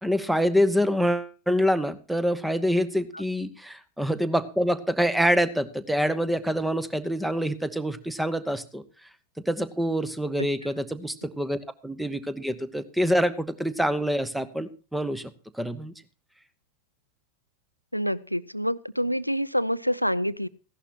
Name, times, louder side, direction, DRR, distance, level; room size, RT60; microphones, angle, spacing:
voice 1, 0.0-8.8 9.5-15.3 15.6-15.9, equal, 5° right, 15 dB, 1.1 m, -26 dB
voice 2, 17.9-20.5, equal, 90° left, 16 dB, 0.5 m, -27 dB
15.5 x 11.5 x 4.2 m, 0.33 s
figure-of-eight pair, 90°, 0 cm